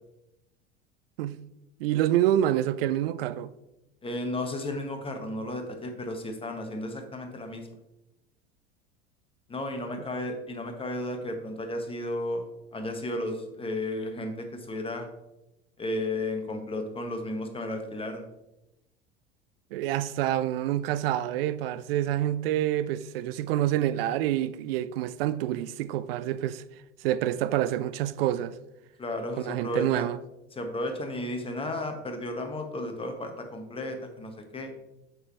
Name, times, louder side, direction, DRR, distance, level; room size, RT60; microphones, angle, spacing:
voice 1, 1.8-3.5 19.7-26.6 27.0-28.6 29.5-30.2, right 12 dB, 60° right, 0.5 m, -27 dB
voice 2, 4.0-7.7 9.5-12.4 12.7-15.1 15.8-18.3 29.0-30.1 30.5-34.7, left 1 dB, 15° left, 1.4 m, -33 dB
8.1 x 6.0 x 3.2 m
figure-of-eight pair, 75°, 33 cm